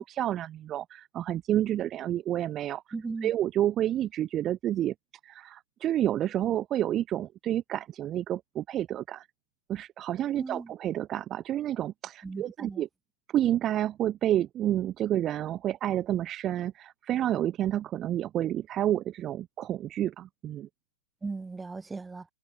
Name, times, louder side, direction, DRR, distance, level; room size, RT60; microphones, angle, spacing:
voice 1, 0.0-2.8 3.2-4.9 5.2-9.3 9.7-12.9 13.3-20.7, right 12 dB, 25° right, 0.4 m, -29 dB
voice 2, 2.9-3.3 10.4-10.7 12.2-12.8 21.2-22.3, right 4 dB, 10° right, 5.6 m, -37 dB
hypercardioid pair, 130°, 0 cm